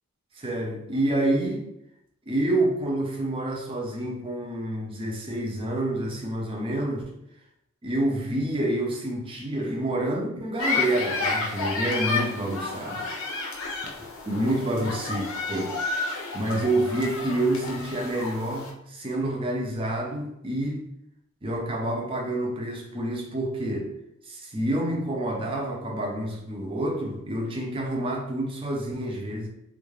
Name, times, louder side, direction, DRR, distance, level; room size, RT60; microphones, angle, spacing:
voice 1, 0.3-1.7 2.3-7.1 7.8-13.1 14.3-20.8 21.4-23.9 24.2-29.5, right 1 dB, 25° right, 0.4 m, -28 dB
sound 1, 10.6-18.7, left 3 dB, 65° left, 0.6 m, -31 dB
2.2 x 2.1 x 3.1 m
head